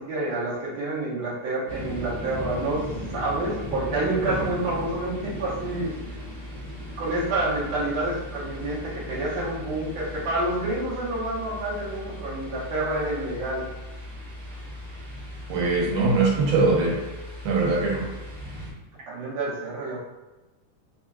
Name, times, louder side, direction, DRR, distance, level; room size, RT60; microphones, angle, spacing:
voice 1, 0.0-2.8 3.1-5.9 7.0-13.7 19.1-20.0, right 2 dB, 65° right, -6 dB, 2.0 m, -28 dB
sound 1, 1.7-18.7, equal, 45° right, 1.8 m, -37 dB
voice 2, 15.5-17.0 17.4-18.1, right 3 dB, 80° right, -3 dB, 2.5 m, -22 dB
5.2 x 2.7 x 2.3 m, 1.1 s
omnidirectional pair, 3.7 m